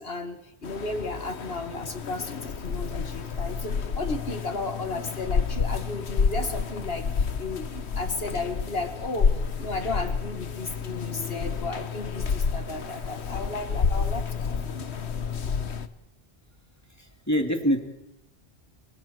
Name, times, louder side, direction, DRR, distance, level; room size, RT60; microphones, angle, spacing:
voice 1, 0.0-9.3 9.6-14.9, left 3 dB, 65° left, 7 dB, 2.2 m, -34 dB
sound 1, 0.6-15.9, left 5 dB, 80° left, 1.5 m, -29 dB
voice 2, 16.9-17.8, equal, 15° left, 4 dB, 2.9 m, -25 dB
29.5 x 24.0 x 4.6 m, 0.87 s
omnidirectional pair, 1.1 m